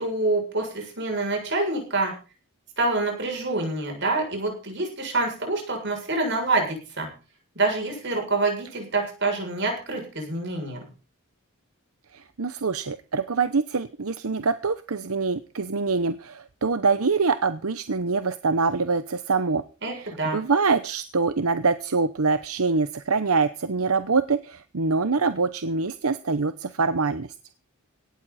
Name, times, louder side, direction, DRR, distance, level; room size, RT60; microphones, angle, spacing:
voice 1, 0.0-2.1 2.8-7.1 7.6-10.8 19.8-20.4, right 2 dB, 55° right, 3 dB, 7.2 m, -26 dB
voice 2, 12.1-19.6 19.9-27.3, right 4 dB, 80° right, 11 dB, 0.9 m, -25 dB
18.0 x 12.5 x 4.2 m, 0.36 s
head